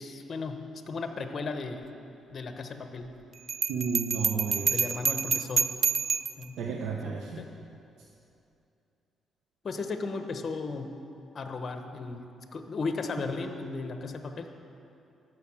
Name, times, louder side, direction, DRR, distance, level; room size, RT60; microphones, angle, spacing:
voice 1, 0.0-1.8 2.3-3.1 4.7-5.7 6.4-6.6 7.0-7.5 9.6-10.9 11.3-12.2 12.5-14.5, left 4 dB, 45° left, 6 dB, 1.1 m, -35 dB
Bell, 3.5-6.4, right 6 dB, 45° right, 0.3 m, -28 dB
voice 2, 3.7-4.8 6.6-7.4, right 5 dB, 85° right, 0 dB, 0.9 m, -32 dB
13.5 x 6.4 x 8.7 m, 2.7 s
cardioid pair, 90°, 0 cm